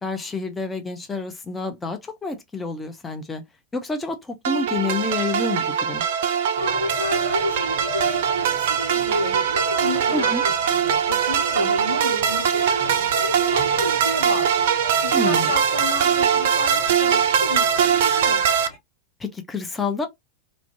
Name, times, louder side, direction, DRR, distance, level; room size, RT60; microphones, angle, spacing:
voice 1, 0.0-3.4 3.7-6.0 10.1-10.4 15.1-15.5 19.2-20.1, left 3 dB, 15° left, 0.5 m, -28 dB
sound 1, 4.4-18.7, right 8 dB, 55° right, 0.3 m, -21 dB
voice 2, 6.6-14.6 15.0-18.4, left 1 dB, 85° left, 0.9 m, -31 dB
sound 2, 6.6-18.8, left 2 dB, 45° left, 1.1 m, -40 dB
2.5 x 2.1 x 2.5 m
figure-of-eight pair, 90°, 0 cm